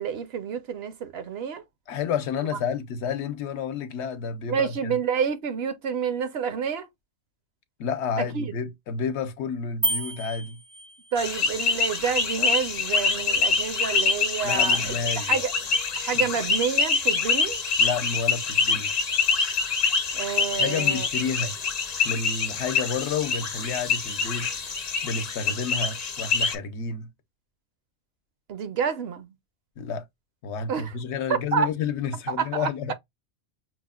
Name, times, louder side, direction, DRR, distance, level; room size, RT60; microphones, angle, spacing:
voice 1, 0.0-1.6 4.5-6.9 8.2-8.5 11.1-15.5 16.0-17.6 20.1-21.1 28.5-29.3 30.7-30.9 31.5-31.7 32.3-32.9, right 7 dB, 65° right, 0.8 m, -29 dB
voice 2, 1.9-5.0 7.8-10.6 14.4-15.4 16.1-16.3 17.8-18.9 20.6-21.5 22.0-24.5 25.0-27.1 29.8-30.0 30.4-32.9, left 6 dB, 75° left, 0.9 m, -30 dB
sound 1, 9.8-11.4, right 2 dB, 35° right, 0.4 m, -30 dB
sound 2, 11.2-26.6, left 5 dB, 45° left, 0.7 m, -25 dB
6.1 x 2.0 x 2.2 m
omnidirectional pair, 1.2 m